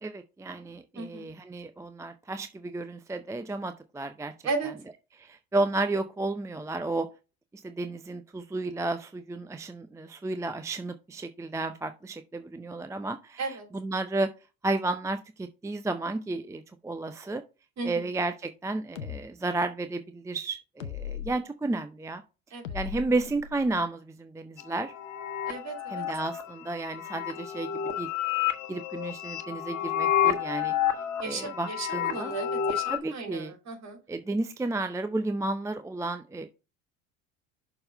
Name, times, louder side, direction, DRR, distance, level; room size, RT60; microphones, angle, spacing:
voice 1, 0.0-4.3 5.2-7.1 7.6-14.3 14.6-17.4 17.8-22.2 22.5-24.9 25.9-30.7 31.2-32.3 32.9-33.5 34.1-36.5, right 2 dB, 10° right, 0.5 m, -32 dB
voice 2, 0.9-1.3 4.4-4.7 13.4-13.7 17.8-18.1 22.5-22.8 25.5-26.0 31.2-34.0, right 3 dB, 45° right, 3.1 m, -35 dB
sound 1, 19.0-19.2 20.8-21.3 22.6-23.8, left 8 dB, 90° left, 0.8 m, -38 dB
sound 2, 24.6-33.0, left 10 dB, 50° left, 1.3 m, -30 dB
6.7 x 3.9 x 5.5 m
hypercardioid pair, 65°, 38 cm